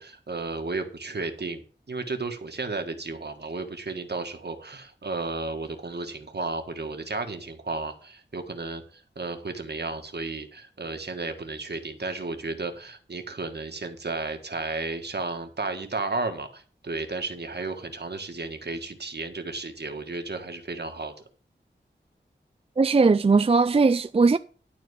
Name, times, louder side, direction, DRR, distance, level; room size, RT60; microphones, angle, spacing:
voice 1, 0.0-21.1, right 3 dB, 60° right, 1.6 m, -33 dB
voice 2, 22.8-24.4, right 4 dB, 30° right, 0.4 m, -19 dB
12.0 x 4.2 x 8.1 m
wide cardioid pair, 80°, 19 cm